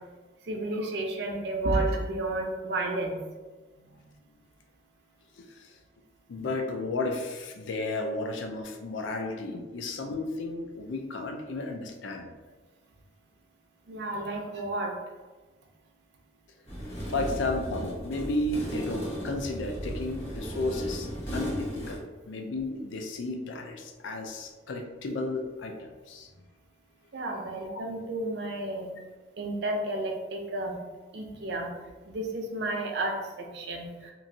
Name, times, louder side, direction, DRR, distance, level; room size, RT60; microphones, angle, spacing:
voice 1, 0.5-3.2 13.9-14.9 17.0-17.1 21.2-21.3 27.1-28.9 29.4-30.8 31.1-31.7 32.1-34.1, right 2 dB, 60° right, 2 dB, 0.5 m, -31 dB
voice 2, 3.8-4.1 5.4-5.7 6.3-12.3 17.1-26.3 27.4-27.8, left 2 dB, 80° left, 4 dB, 0.4 m, -33 dB
sound 1, 16.6-22.0, equal, 35° left, 1.2 m, -36 dB
2.9 x 2.5 x 2.6 m, 1.3 s
head